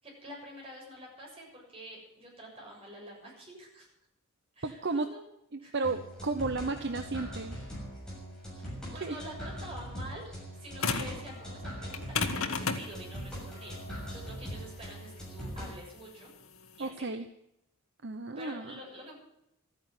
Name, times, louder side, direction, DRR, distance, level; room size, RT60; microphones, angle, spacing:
voice 1, 0.0-3.9 4.5-5.2 5.6-5.7 8.5-10.3 10.6-13.8 14.1-16.3 16.8-17.1 18.4-19.2, equal, 25° right, -3 dB, 7.3 m, -47 dB
voice 2, 4.6-5.1 5.7-7.5 9.0-9.2 16.8-17.2 18.0-18.8, right 3 dB, 55° right, 8 dB, 0.9 m, -33 dB
sound 1, 5.8-15.7, equal, 5° left, 6.6 m, -41 dB
sound 2, 10.8-11.2 11.9-16.9, left 5 dB, 75° left, 1.6 m, -34 dB
13.5 x 9.8 x 9.6 m, 0.80 s
head